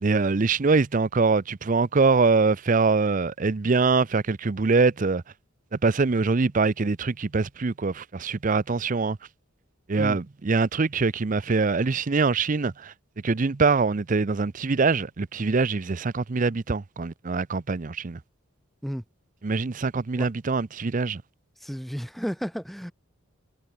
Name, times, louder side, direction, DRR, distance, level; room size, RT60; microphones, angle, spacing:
voice 1, 0.0-5.2 5.7-9.2 9.9-12.9 13.2-18.2 19.4-21.2, right 4 dB, 40° right, 0.5 m, -23 dB
voice 2, 21.6-22.9, equal, ahead, 2.2 m, -32 dB
head